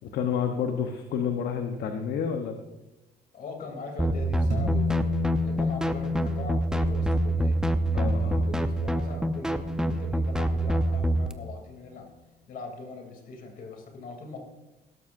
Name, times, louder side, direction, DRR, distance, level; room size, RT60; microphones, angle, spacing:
voice 1, 0.0-2.6 7.9-8.5, left 7 dB, 70° left, 5 dB, 1.0 m, -29 dB
voice 2, 3.3-5.1 5.4-7.6 7.9-12.1 12.5-14.4, left 3 dB, 55° left, 2 dB, 3.0 m, -41 dB
sound 1, 4.0-11.3, right 1 dB, 5° right, 0.7 m, -26 dB
sound 2, 4.5-11.1, left 7 dB, 50° right, 4.1 m, -34 dB
17.0 x 12.5 x 2.6 m, 1.0 s
cardioid pair, 110°, 17 cm